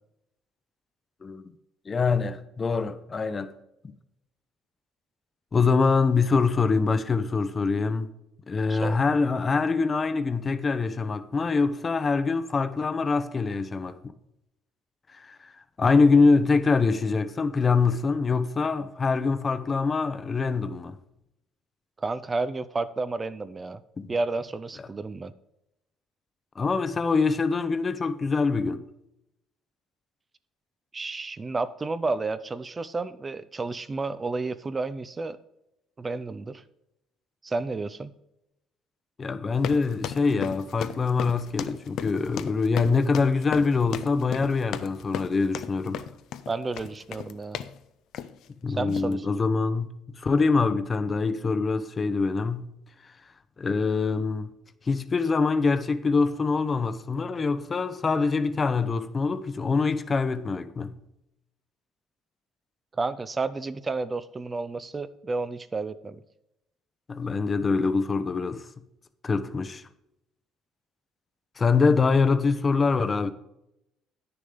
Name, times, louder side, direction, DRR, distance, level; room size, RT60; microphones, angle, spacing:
voice 1, 1.9-3.5 5.5-8.1 8.5-14.0 15.1-15.5 15.8-21.0 24.0-24.1 26.6-28.8 39.2-46.1 48.6-52.7 53.6-54.5 54.9-60.9 67.1-68.7 69.2-69.8 71.6-73.3, left 4 dB, 35° left, 0.7 m, -24 dB
voice 2, 22.0-23.8 24.1-25.3 30.9-35.4 36.0-36.6 37.4-38.1 46.5-47.6 48.7-49.3 62.9-66.2, right 3 dB, 30° right, 0.5 m, -31 dB
sound 1, 39.5-47.8 48.1-48.5 48.9-49.1, left 10 dB, 70° left, 0.5 m, -36 dB
9.3 x 6.8 x 5.2 m
supercardioid pair, 75°, 0 cm